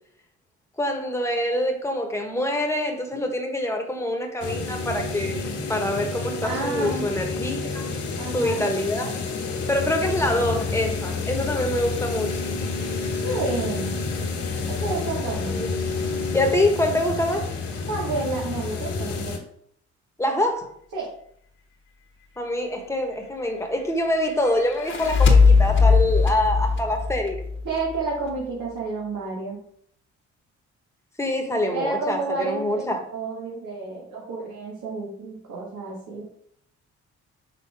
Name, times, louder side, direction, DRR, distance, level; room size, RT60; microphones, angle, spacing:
voice 1, 0.8-7.8 8.3-9.2 9.7-12.4 15.4-15.7 16.3-17.5 20.2-20.7 22.4-27.4 31.2-33.0, left 1 dB, 10° left, 3 dB, 1.3 m, -25 dB
sound 1, 4.4-19.4, left 4 dB, 75° left, 1.6 m, -29 dB
voice 2, 6.4-7.1 8.2-8.7 13.2-13.9 14.7-15.6 17.9-19.4 20.9-21.1 27.6-29.6 31.7-32.7 33.1-36.2, right 3 dB, 75° right, -5 dB, 1.9 m, -30 dB
sound 2, 24.6-28.0, left 4 dB, 40° left, 1.2 m, -19 dB
5.7 x 3.8 x 4.8 m, 0.66 s
cardioid pair, 90°, 30 cm